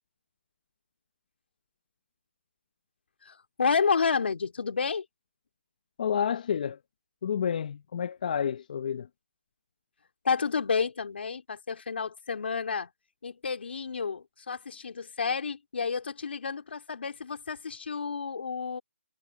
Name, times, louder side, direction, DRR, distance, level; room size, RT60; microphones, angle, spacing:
voice 1, 3.2-5.1 10.2-12.9 13.2-18.8, left 5 dB, 60° left, 3.5 m, -30 dB
voice 2, 6.0-6.8 7.2-9.1, left 8 dB, 40° left, 0.9 m, -29 dB
hypercardioid pair, 160°, 7 cm